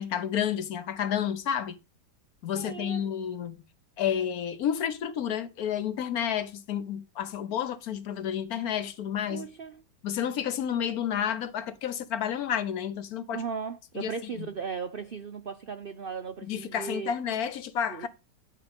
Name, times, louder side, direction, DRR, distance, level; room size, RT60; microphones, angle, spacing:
voice 1, 0.0-1.8 2.4-3.6 4.0-9.5 10.0-13.4 13.9-14.1 14.4-14.5 16.5-18.1, left 9 dB, 65° left, 1.2 m, -30 dB
voice 2, 2.6-3.0 9.3-9.8 13.3-17.1 17.9-18.1, right 6 dB, 70° right, 0.5 m, -37 dB
10.5 x 5.0 x 5.2 m
omnidirectional pair, 1.8 m